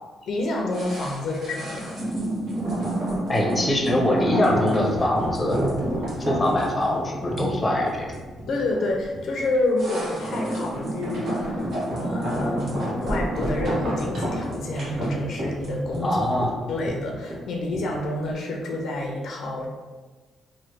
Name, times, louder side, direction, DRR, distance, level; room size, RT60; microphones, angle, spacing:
voice 1, 0.2-2.1 8.4-11.7 12.0-16.2 16.7-19.7, left 2 dB, 70° left, 1 dB, 0.5 m, -28 dB
sound 1, 0.7-18.0 18.3-18.4, right 1 dB, 60° right, 1.1 m, -29 dB
voice 2, 3.3-5.6 5.9-8.1 16.0-16.5, left 1 dB, 25° left, -1 dB, 0.6 m, -23 dB
3.0 x 2.1 x 3.3 m, 1.3 s
cardioid pair, 90°, 0 cm